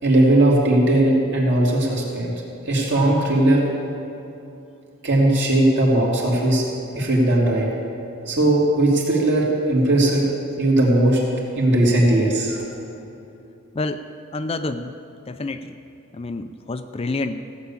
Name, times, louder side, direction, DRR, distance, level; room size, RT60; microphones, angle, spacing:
voice 1, 0.0-2.3 2.7-3.7 5.0-6.6 6.9-7.7 8.3-10.2 10.6-11.2 11.5-12.6, right 1 dB, 55° right, -3 dB, 3.0 m, -18 dB
voice 2, 13.7-15.0 15.3-15.8 16.1-17.4, left 2 dB, 25° left, 9 dB, 0.4 m, -28 dB
15.5 x 8.5 x 7.2 m, 2.8 s
head